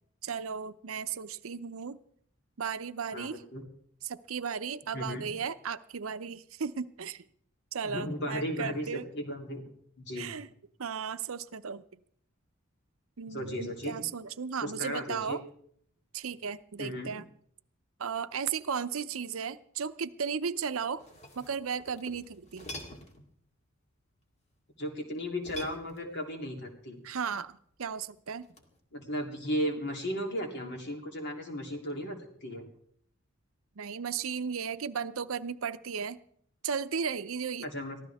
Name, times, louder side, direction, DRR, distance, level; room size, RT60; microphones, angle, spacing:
voice 1, 0.2-2.0 2.6-3.4 4.0-7.2 7.7-9.1 10.2-10.5 10.8-11.8 13.2-15.4 16.1-17.2 18.0-21.0 21.4-22.7 27.0-28.5 33.8-36.2 36.6-37.7, right 6 dB, 80° right, 13 dB, 0.7 m, -35 dB
voice 2, 3.1-3.6 4.9-5.3 7.8-9.6 10.0-10.4 13.3-14.0 14.6-15.4 16.8-17.1 24.8-27.0 28.9-32.7 37.6-38.0, equal, 55° left, 2 dB, 3.2 m, -35 dB
sound 1, 20.8-23.3 25.4-26.4 28.4-28.8, equal, 30° left, 2.2 m, -46 dB
23.5 x 15.0 x 3.5 m, 0.66 s
head